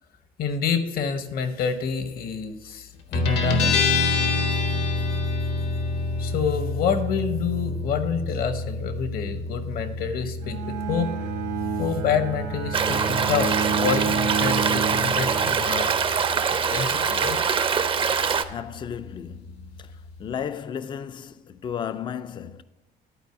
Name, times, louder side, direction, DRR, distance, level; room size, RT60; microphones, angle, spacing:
voice 1, 0.4-3.8 6.2-11.1 11.8-15.9 16.5-17.4, left 6 dB, 60° left, 0.9 m, -28 dB
Guitar, 3.1-20.3, left 3 dB, 80° left, 1.3 m, -29 dB
voice 2, 3.1-3.4 18.5-22.6, left 8 dB, 30° left, 0.3 m, -34 dB
Bowed string instrument, 10.4-16.2, right 6 dB, 70° right, 1.1 m, -30 dB
Stream, 12.7-18.4, right 6 dB, 30° right, 0.5 m, -24 dB
11.5 x 4.5 x 4.6 m
cardioid pair, 110°, 17 cm